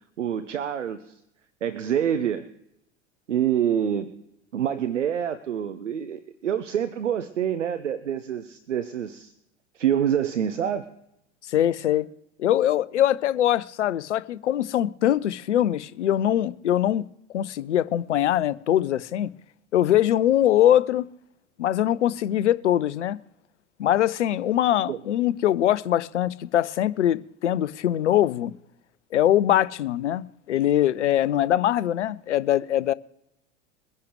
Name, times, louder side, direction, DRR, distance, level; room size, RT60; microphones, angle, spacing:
voice 1, 0.2-1.2 1.6-2.5 3.3-4.1 4.5-9.3 9.7-10.9 24.9-25.0, right 9 dB, 75° right, 0.8 m, -26 dB
voice 2, 11.5-12.1 12.4-17.1 17.3-19.3 19.7-21.1 21.6-23.2 23.8-28.5 29.1-32.9, left 12 dB, 70° left, 0.7 m, -22 dB
22.5 x 10.5 x 3.2 m
figure-of-eight pair, 85°, 37 cm